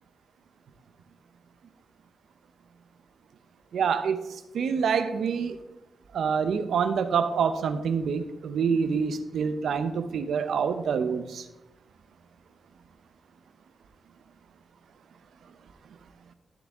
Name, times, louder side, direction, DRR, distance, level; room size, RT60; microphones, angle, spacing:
voice 1, 3.7-5.6 6.1-11.5, right 6 dB, 75° right, 10 dB, 0.7 m, -26 dB
12.0 x 6.9 x 3.7 m, 0.97 s
wide cardioid pair, 175°, 0 cm